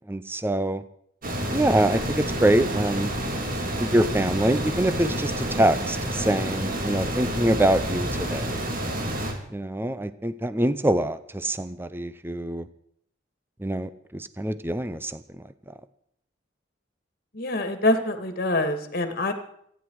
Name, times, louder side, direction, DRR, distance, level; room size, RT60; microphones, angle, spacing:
voice 1, 0.1-0.8 1.5-3.1 3.8-8.7 9.5-12.7 13.6-15.2, right 1 dB, 10° right, 13 dB, 0.7 m, -25 dB
sound 1, 1.2-9.3, right 1 dB, 50° right, 3.8 m, -29 dB
voice 2, 17.3-19.3, left 1 dB, 55° left, 7 dB, 2.1 m, -25 dB
27.5 x 10.5 x 4.8 m, 0.69 s
head